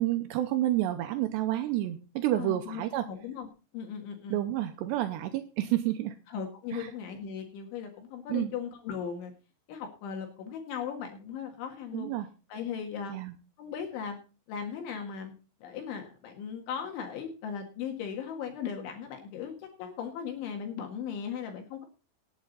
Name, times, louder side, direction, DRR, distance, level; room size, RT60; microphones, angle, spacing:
voice 1, 0.0-3.1 4.3-6.2 6.7-6.9 8.3-8.5 11.9-12.3 13.1-13.4, right 14 dB, 85° right, 8 dB, 2.6 m, -29 dB
voice 2, 2.3-3.5 3.7-4.4 6.3-9.3 9.7-12.1 12.5-13.2 13.6-14.2 14.5-15.3 15.6-21.9, left 7 dB, 70° left, 3 dB, 3.9 m, -37 dB
18.5 x 8.7 x 4.0 m, 0.32 s
omnidirectional pair, 5.8 m